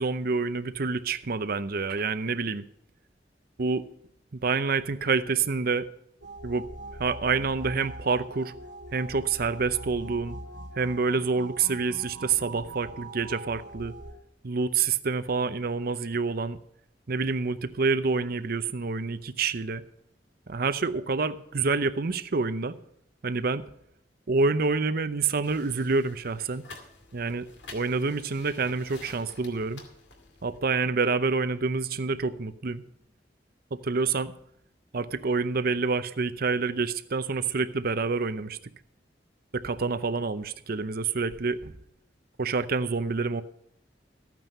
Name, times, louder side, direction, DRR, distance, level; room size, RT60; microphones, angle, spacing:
voice 1, 0.0-2.6 3.6-3.8 4.3-5.9 6.4-6.6 7.0-8.5 8.9-10.4 10.8-13.9 14.4-16.6 17.1-19.8 20.5-22.8 23.2-23.6 24.3-26.6 27.1-27.5 27.7-29.8 30.4-32.8 33.7-34.3 34.9-38.6 39.5-41.7 42.4-43.4, right 4 dB, 55° right, 13 dB, 0.7 m, -27 dB
sound 1, 6.2-14.1, right 1 dB, 80° right, 1.2 m, -42 dB
sound 2, 25.4-30.6, left 3 dB, 75° left, 2.2 m, -49 dB
14.0 x 9.2 x 5.4 m, 0.75 s
head